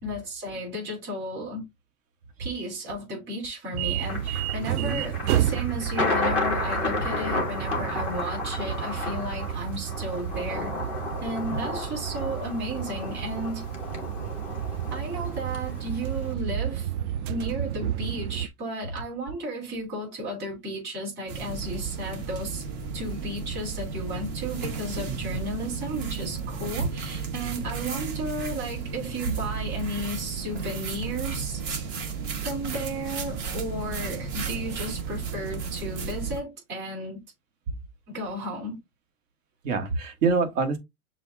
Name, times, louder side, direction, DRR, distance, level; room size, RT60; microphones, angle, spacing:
voice 1, 0.0-1.6 2.4-10.7 11.2-13.6 14.9-16.9 17.3-22.7 22.9-31.6 32.4-37.2 38.1-38.8, equal, 25° right, 2.9 m, -34 dB
sound 1, 3.7-18.5, right 11 dB, 85° right, 0.6 m, -31 dB
Thunder, 4.0-16.3, left 3 dB, 5° right, 0.3 m, -32 dB
voice 2, 4.6-5.0 11.5-11.6 25.1-25.4 26.8-26.9 39.6-40.8, right 4 dB, 65° right, 1.5 m, -27 dB
sound 2, 21.3-36.4, right 6 dB, 45° right, 1.4 m, -33 dB
6.7 x 2.3 x 3.4 m
supercardioid pair, 155°, 43 cm